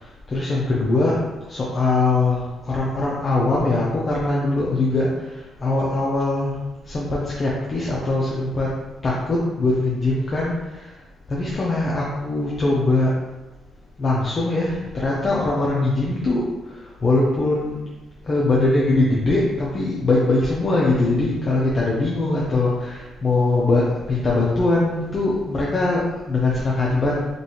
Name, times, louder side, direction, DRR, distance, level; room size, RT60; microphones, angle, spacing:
voice 1, 0.0-6.6 6.8-8.8 9.0-11.0 11.3-13.2 14.0-17.8 18.2-27.4, left 2 dB, 40° left, -5 dB, 0.8 m, -22 dB
5.2 x 2.7 x 3.1 m, 1.1 s
cardioid pair, 90°, 0 cm